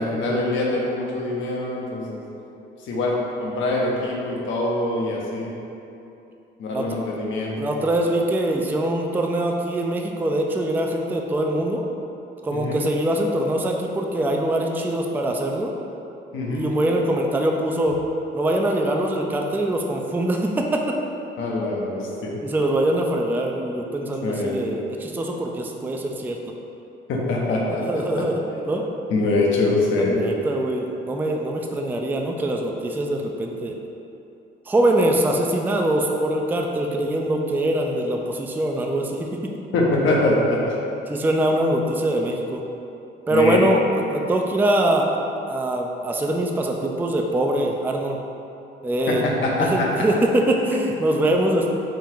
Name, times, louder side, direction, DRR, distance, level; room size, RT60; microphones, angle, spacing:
voice 1, 0.0-2.2 2.8-5.6 6.6-7.7 12.5-12.8 16.3-16.7 21.4-22.4 24.2-24.6 27.1-28.0 29.1-30.2 39.7-40.8 43.3-43.6 49.1-49.9 50.7-50.8 51.2-51.4, left 2 dB, 80° left, -2 dB, 0.8 m, -24 dB
voice 2, 7.6-11.8 12.4-15.7 16.5-18.0 18.3-20.9 22.4-26.4 27.7-28.8 30.0-33.8 34.7-39.3 41.1-42.6 43.3-45.1 45.5-48.2 48.8-49.3 49.6-51.7, right 1 dB, 10° right, 1 dB, 0.3 m, -23 dB
3.8 x 2.4 x 4.4 m, 2.8 s
cardioid pair, 90°, 20 cm